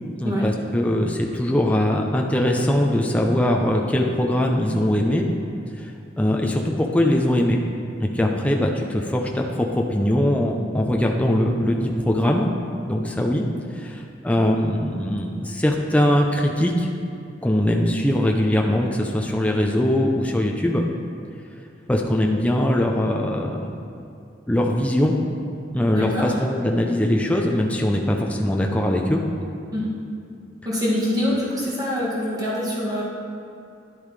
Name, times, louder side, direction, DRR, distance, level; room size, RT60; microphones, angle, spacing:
voice 1, 0.2-5.3 5.8-5.9 6.2-7.6 8.0-12.5 12.9-13.5 13.7-16.9 17.4-20.8 21.9-23.7 24.5-25.2 25.7-29.2, left 1 dB, 10° left, 0 dB, 0.5 m, -21 dB
voice 2, 25.9-26.3 29.7-29.9 30.6-33.0, left 1 dB, 20° right, -7 dB, 2.1 m, -24 dB
11.0 x 8.5 x 3.2 m, 2.6 s
head